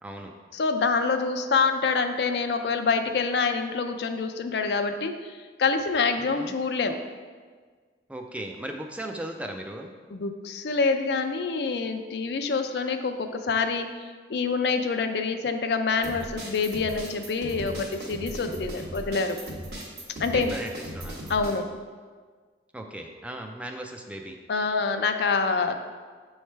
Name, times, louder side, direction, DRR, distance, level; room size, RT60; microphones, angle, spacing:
voice 1, 0.0-0.3 6.2-6.6 8.1-9.9 20.3-21.2 22.7-24.4, right 1 dB, 5° right, 3 dB, 0.3 m, -37 dB
voice 2, 0.5-5.1 5.6-7.0 10.1-13.9 14.3-19.4 20.2-20.5 21.3-21.7 24.5-25.8, left 4 dB, 70° left, 7 dB, 0.4 m, -26 dB
sound 1, 16.0-21.5, right 1 dB, 60° right, 1.2 m, -37 dB
7.3 x 3.2 x 4.5 m, 1.5 s
head